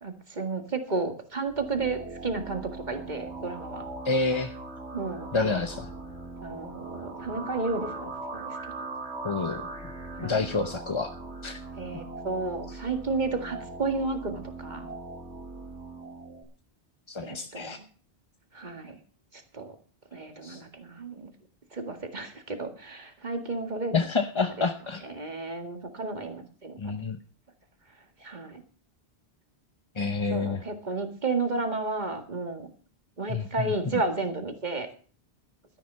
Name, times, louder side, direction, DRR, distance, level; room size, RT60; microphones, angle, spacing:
voice 1, 0.0-3.9 4.9-5.6 6.4-8.9 10.2-10.4 11.8-14.9 17.2-17.8 18.5-19.0 19.3-19.7 20.1-21.3 21.7-23.9 25.0-26.8 28.2-28.6 30.3-32.7 33.2-34.9, right 3 dB, 40° right, 5 dB, 2.1 m, -32 dB
sound 1, 1.5-16.4, right 3 dB, 85° right, 2.5 m, -40 dB
voice 2, 4.0-4.5 5.3-5.9 9.2-9.7 10.2-11.1 11.4-11.6 11.9-12.0 17.1-17.8 20.4-20.6 23.9-25.0 26.8-27.2 30.0-30.6 33.3-34.0, left 4 dB, 30° left, 7 dB, 0.8 m, -28 dB
13.0 x 10.5 x 5.6 m, 0.41 s
omnidirectional pair, 1.1 m